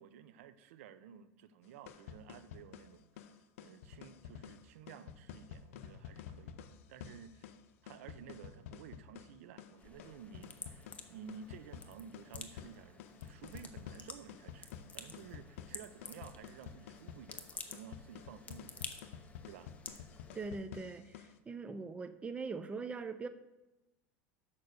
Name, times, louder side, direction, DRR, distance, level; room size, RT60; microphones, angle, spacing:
voice 1, 0.0-3.3 3.6-7.5 7.8-19.2 19.5-19.7, right 8 dB, 80° right, 0.6 m, -53 dB
sound 1, 1.6-21.4, left 8 dB, 80° left, 0.6 m, -51 dB
sound 2, 9.8-20.5, left 4 dB, 20° left, 0.8 m, -51 dB
voice 2, 20.3-23.3, right 4 dB, 15° right, 0.5 m, -42 dB
6.7 x 5.5 x 6.5 m
supercardioid pair, 125°, 7 cm